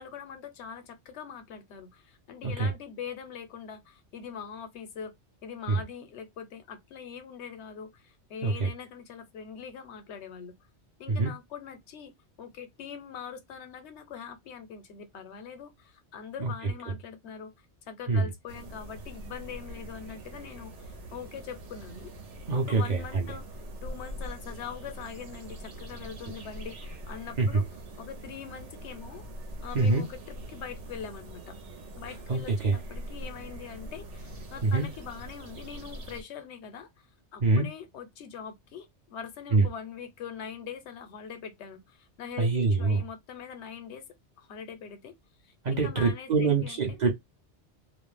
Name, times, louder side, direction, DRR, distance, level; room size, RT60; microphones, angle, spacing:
voice 1, 0.0-5.1 5.4-10.6 11.0-12.1 12.4-17.5 17.9-22.1 22.5-23.4 23.8-27.6 28.0-29.2 29.6-31.6 32.0-44.1 44.4-45.1 45.4-46.8, left 7 dB, 75° left, 0.9 m, -43 dB
sound 1, 18.5-36.2, right 1 dB, 80° right, 1.1 m, -43 dB
voice 2, 22.5-23.3 27.4-27.6 29.7-30.0 32.3-32.8 34.6-34.9 37.4-37.7 39.5-39.7 42.4-43.0 45.6-47.1, right 3 dB, 45° right, 0.6 m, -25 dB
2.4 x 2.0 x 3.1 m
omnidirectional pair, 1.2 m